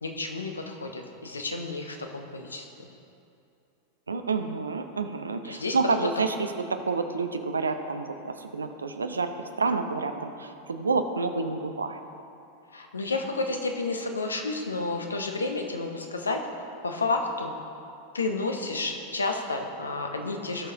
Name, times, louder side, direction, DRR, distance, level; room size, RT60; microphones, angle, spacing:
voice 1, 0.0-2.9 5.4-5.8 12.7-16.4 16.8-17.5 18.1-20.7, left 3 dB, 75° left, 3 dB, 1.0 m, -31 dB
voice 2, 4.1-6.3 6.7-9.3 9.6-12.0, right 4 dB, 75° right, 8 dB, 0.6 m, -29 dB
17.5 x 6.5 x 3.0 m, 2.7 s
figure-of-eight pair, 90°, 0 cm